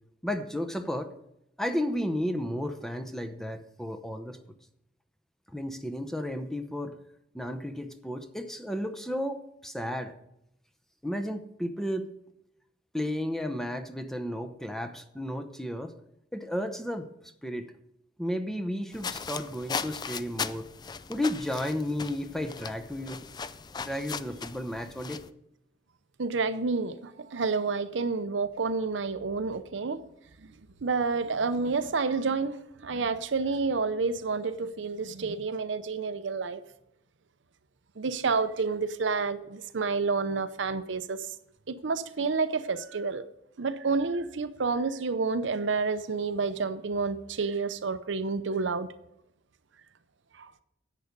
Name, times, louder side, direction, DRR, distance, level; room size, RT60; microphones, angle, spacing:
voice 1, 0.2-1.1 1.6-4.4 5.5-6.9 7.3-10.1 11.0-12.1 12.9-15.9 16.3-17.1 17.4-17.7 18.2-20.7 21.1-23.2 23.8-25.2, left 1 dB, ahead, 0.7 m, -33 dB
sound 1, 18.9-25.3, left 5 dB, 20° left, 0.3 m, -38 dB
voice 2, 26.2-30.0 30.5-36.6 38.0-41.3 41.7-43.2 43.6-48.9 50.3-50.5, right 4 dB, 75° right, 0.6 m, -29 dB
10.5 x 8.3 x 5.2 m
head